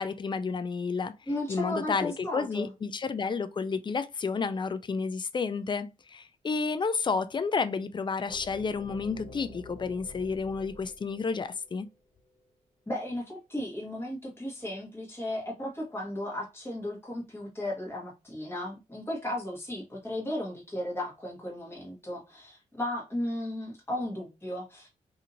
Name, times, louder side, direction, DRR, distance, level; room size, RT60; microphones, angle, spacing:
voice 1, 0.0-1.1 1.5-11.9, left 5 dB, 35° left, 0.4 m, -31 dB
voice 2, 1.3-2.7 12.9-24.9, left 1 dB, 15° left, 1.2 m, -35 dB
sound 1, 8.3-12.2, left 2 dB, 60° left, 0.8 m, -48 dB
2.7 x 2.6 x 2.6 m
cardioid pair, 60°, 14 cm